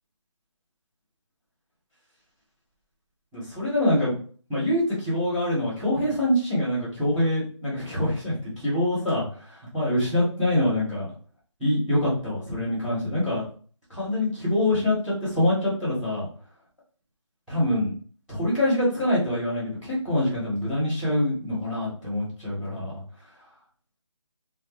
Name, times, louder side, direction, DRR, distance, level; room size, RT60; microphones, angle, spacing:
voice 1, 3.3-4.1 4.5-11.1 11.6-13.4 13.9-16.3 17.5-17.9 18.3-23.0, left 1 dB, ahead, -23 dB, 0.4 m, -25 dB
2.2 x 2.1 x 3.0 m, 0.43 s
figure-of-eight pair, 160°, 16 cm